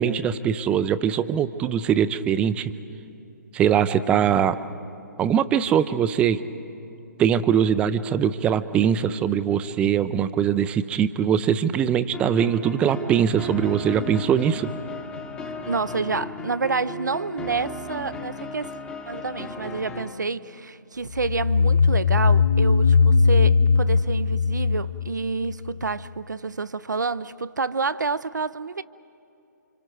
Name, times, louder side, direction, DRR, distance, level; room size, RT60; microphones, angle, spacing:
voice 1, 0.0-2.7 3.5-4.6 5.2-6.4 7.2-14.7, right 8 dB, 10° right, 0.5 m, -22 dB
sound 1, 12.1-20.1, left 1 dB, 10° left, 1.0 m, -36 dB
voice 2, 15.7-18.7 19.1-28.8, right 4 dB, 70° right, 0.6 m, -28 dB
sound 2, 21.1-25.7, left 5 dB, 40° left, 0.7 m, -19 dB
29.5 x 26.5 x 4.8 m
figure-of-eight pair, 135°, 10 cm